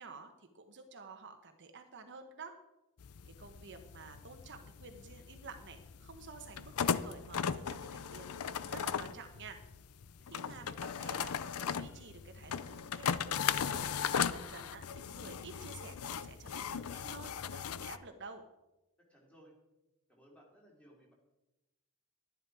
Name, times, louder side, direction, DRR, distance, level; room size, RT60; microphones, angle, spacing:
voice 1, 0.0-2.5 3.3-9.6 10.3-13.9 14.1-18.4, right 4 dB, 55° right, 6 dB, 1.0 m, -51 dB
sound 1, 3.0-18.0, left 7 dB, 80° left, 0.5 m, -38 dB
voice 2, 10.2-10.8 19.1-19.6 20.1-21.1, equal, 5° left, -1 dB, 3.1 m, -60 dB
12.0 x 10.5 x 4.8 m, 0.99 s
head